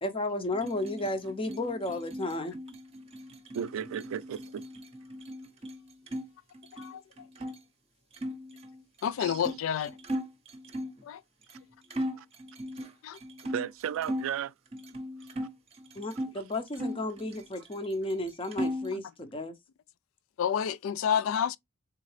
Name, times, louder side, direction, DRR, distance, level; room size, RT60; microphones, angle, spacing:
voice 1, 0.0-2.6 16.0-19.5, left 2 dB, 25° left, 0.6 m, -33 dB
sound 1, 0.5-6.2 6.5-7.6 8.1-11.0 11.5-11.6 11.9-14.3 14.7-16.3 16.7-17.8 18.1-19.0, equal, 30° right, 0.7 m, -38 dB
voice 2, 3.5-4.6 9.2-9.4 12.2-12.3 13.4-14.5, right 9 dB, 85° right, 0.3 m, -34 dB
voice 3, 9.0-9.9 11.0-11.2 13.0-13.2 20.4-21.6, left 8 dB, 75° left, 0.3 m, -29 dB
3.8 x 3.5 x 3.1 m
head